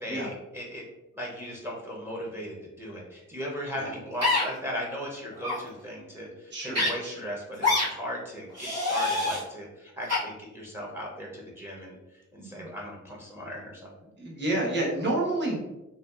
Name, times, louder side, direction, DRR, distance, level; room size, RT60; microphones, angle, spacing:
voice 1, 0.0-0.8 1.2-12.0 12.3-14.1, equal, 10° right, -2 dB, 0.6 m, -37 dB
sound 1, 4.2-4.4 5.4-5.6 6.7-6.9 7.6-7.9 8.5-9.4 10.1-10.2, left 2 dB, 60° right, 1.3 m, -25 dB
voice 2, 6.5-7.2 12.4-12.7 14.2-15.6, right 2 dB, 35° right, -4 dB, 1.0 m, -30 dB
2.6 x 2.3 x 2.3 m, 0.97 s
cardioid pair, 90°, 30 cm